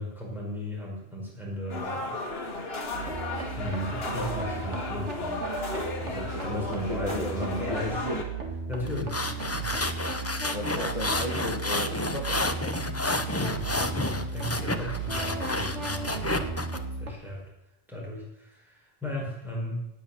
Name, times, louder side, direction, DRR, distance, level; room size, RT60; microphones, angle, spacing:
voice 1, 0.0-2.1 3.6-5.4 6.0-8.0 8.7-9.8 13.1-16.5 17.0-17.4 17.9-19.9, left 1 dB, ahead, -4 dB, 5.2 m, -36 dB
sound 1, 1.7-8.2, left 2 dB, 60° left, 2.0 m, -35 dB
sound 2, 2.9-17.1, right 4 dB, 80° right, 2.2 m, -35 dB
voice 2, 6.1-7.3 7.6-8.2 10.5-12.7, left 2 dB, 30° left, -2 dB, 1.9 m, -35 dB
sound 3, 8.9-16.8, left 2 dB, 15° left, 0.7 m, -30 dB
18.5 x 6.5 x 7.3 m, 0.89 s
omnidirectional pair, 1.2 m